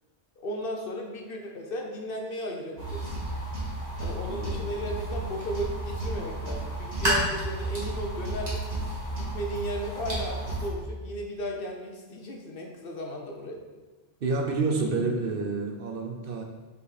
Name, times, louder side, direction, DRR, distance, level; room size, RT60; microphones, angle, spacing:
voice 1, 0.4-3.2 4.0-8.7 9.1-13.6, equal, 55° left, 1 dB, 0.9 m, -35 dB
sound 1, 2.8-10.7, right 1 dB, 35° right, 2.0 m, -32 dB
voice 2, 4.3-4.7 14.2-16.4, right 3 dB, 55° right, 2 dB, 0.8 m, -29 dB
5.4 x 5.3 x 4.1 m, 1.3 s
omnidirectional pair, 1.2 m